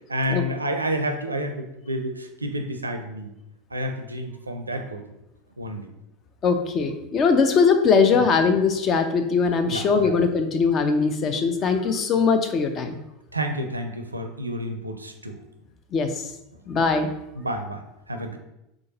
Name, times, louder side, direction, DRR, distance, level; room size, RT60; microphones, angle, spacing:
voice 1, 0.1-3.3 3.7-5.0 5.6-5.9 8.1-8.3 9.6-10.1 13.3-15.4 17.4-18.4, equal, 80° right, 6 dB, 0.4 m, -30 dB
voice 2, 6.4-13.0 15.9-16.2 16.7-17.1, left 5 dB, 35° left, 8 dB, 0.5 m, -21 dB
3.8 x 3.4 x 3.9 m, 0.86 s
figure-of-eight pair, 80°, 0 cm